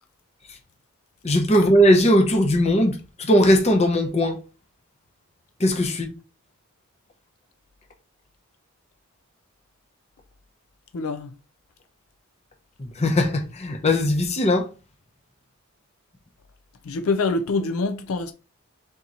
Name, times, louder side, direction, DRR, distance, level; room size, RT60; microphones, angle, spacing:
voice 1, 1.2-4.4 5.6-6.1 12.8-14.7, equal, 30° left, 0.7 m, -19 dB
voice 2, 10.9-11.3 16.9-18.3, left 3 dB, 70° left, 0.4 m, -25 dB
3.7 x 2.9 x 3.9 m
head